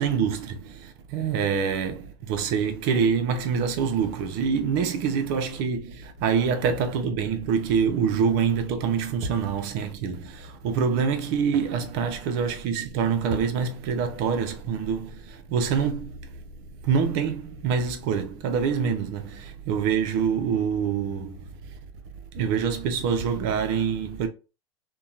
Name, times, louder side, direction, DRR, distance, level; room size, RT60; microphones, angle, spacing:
voice 1, 0.0-16.2 16.8-21.4 22.3-24.3, right 6 dB, 60° right, 0.6 m, -25 dB
2.8 x 2.2 x 2.4 m
supercardioid pair, 110°, 14 cm